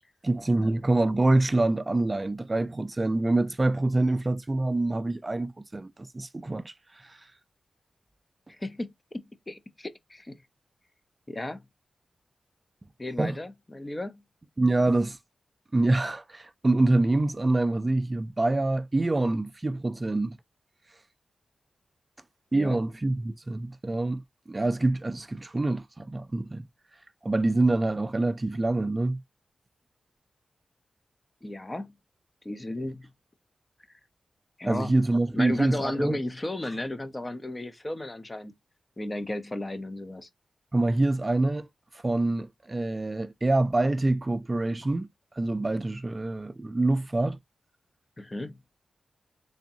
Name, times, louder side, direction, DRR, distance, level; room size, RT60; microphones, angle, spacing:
voice 1, 0.2-7.2 13.2-13.4 14.6-15.2 15.7-20.4 22.5-24.2 24.5-26.7 27.2-29.2 34.7-36.2 40.7-41.7 41.9-45.1 45.4-47.4, right 2 dB, 30° right, 0.4 m, -26 dB
voice 2, 8.5-10.4 11.3-11.6 13.0-14.2 22.5-22.8 31.4-31.9 32.4-33.1 34.6-35.0 35.3-38.5 39.0-40.3 48.2-48.6, left 1 dB, 25° left, 0.6 m, -34 dB
4.0 x 3.4 x 2.6 m
cardioid pair, 60°, 0 cm